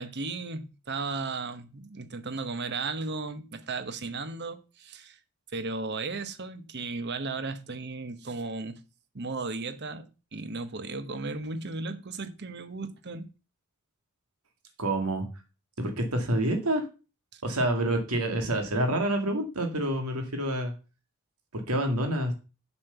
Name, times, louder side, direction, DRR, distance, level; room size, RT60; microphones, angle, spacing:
voice 1, 0.0-5.2 5.5-8.8 9.1-10.1 10.3-13.3 17.3-17.4, right 3 dB, 50° right, 1.0 m, -35 dB
voice 2, 14.8-15.3 15.8-16.9 17.4-20.7 21.5-22.3, right 1 dB, 85° right, 2.1 m, -27 dB
7.2 x 6.4 x 6.8 m
head